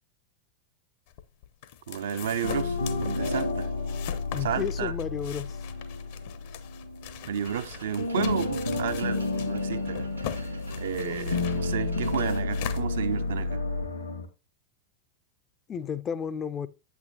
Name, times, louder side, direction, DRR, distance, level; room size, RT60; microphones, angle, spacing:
sound 1, 1.1-13.6, left 10 dB, 50° left, 0.7 m, -42 dB
voice 1, 1.9-3.7 4.4-4.9 7.3-13.6, right 8 dB, 60° right, 0.5 m, -32 dB
sound 2, 2.4-7.7 8.0-14.3, left 3 dB, 80° left, 1.4 m, -31 dB
voice 2, 4.3-5.6 15.7-16.7, left 7 dB, 25° left, 0.4 m, -32 dB
sound 3, 7.4-12.8, right 4 dB, 80° right, 1.0 m, -47 dB
8.5 x 8.2 x 2.7 m
figure-of-eight pair, 90°, 0 cm